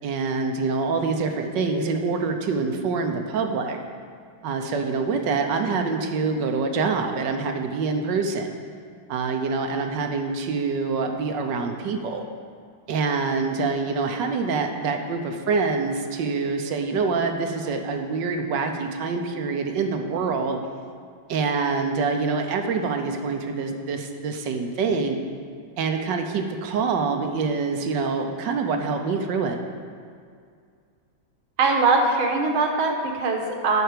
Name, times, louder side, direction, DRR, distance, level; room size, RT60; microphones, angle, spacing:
voice 1, 0.0-3.8 4.4-8.5 9.1-12.3 12.9-20.6 21.3-25.2 25.8-29.6, right 4 dB, 70° right, 4 dB, 1.4 m, -25 dB
voice 2, 31.6-33.8, right 3 dB, 90° right, 3 dB, 1.9 m, -21 dB
9.0 x 5.7 x 6.7 m, 2.2 s
omnidirectional pair, 2.2 m